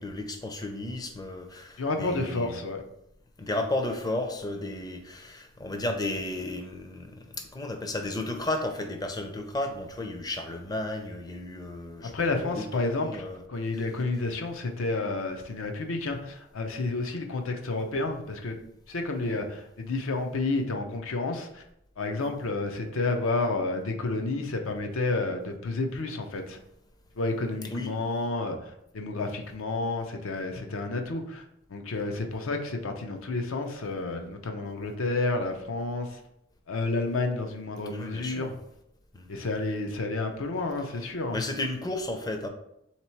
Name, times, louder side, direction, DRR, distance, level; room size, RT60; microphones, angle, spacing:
voice 1, 0.0-2.6 3.4-13.4 27.7-27.9 37.9-38.5 39.1-39.4 41.3-42.5, left 2 dB, 20° left, 4 dB, 0.5 m, -33 dB
voice 2, 1.8-2.8 12.1-13.2 13.5-18.6 18.9-21.6 22.0-26.6 27.2-31.4 31.7-36.2 36.7-38.5 39.3-41.4, left 3 dB, 75° left, 4 dB, 0.6 m, -30 dB
3.8 x 2.9 x 4.4 m, 0.78 s
head